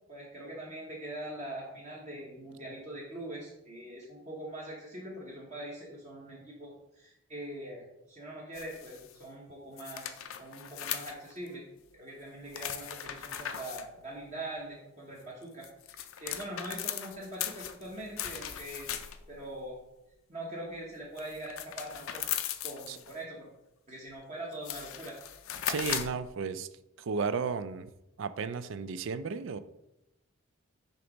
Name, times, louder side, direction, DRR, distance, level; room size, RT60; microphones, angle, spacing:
voice 1, 0.1-11.6 11.9-18.9 19.3-19.8 20.3-23.5 23.9-25.1, right 1 dB, 35° right, -4 dB, 1.0 m, -43 dB
sound 1, 8.5-9.1 9.8-11.5 12.5-13.9 15.4-19.3 21.2-23.1 24.1-24.2 24.5-26.2, left 10 dB, 75° left, 0.5 m, -38 dB
voice 2, 25.7-26.7 27.0-27.9 28.2-29.6, right 5 dB, 65° right, 13 dB, 0.4 m, -33 dB
6.5 x 3.0 x 5.1 m, 0.89 s
head